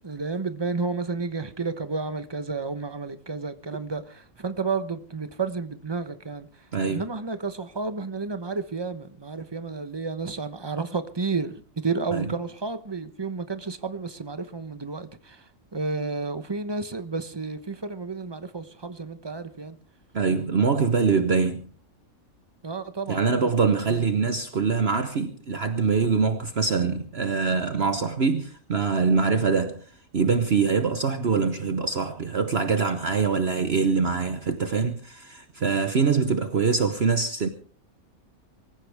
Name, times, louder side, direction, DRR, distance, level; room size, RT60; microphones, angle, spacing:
voice 1, 0.0-6.5 6.9-15.4 15.7-19.8 22.6-23.5 23.9-24.1, right 4 dB, 20° right, 1.0 m, -31 dB
voice 2, 6.7-7.0 12.1-12.2 20.1-21.6 23.1-29.8 30.1-37.5, right 5 dB, 50° right, 1.3 m, -24 dB
24.5 x 15.0 x 3.5 m
omnidirectional pair, 1.4 m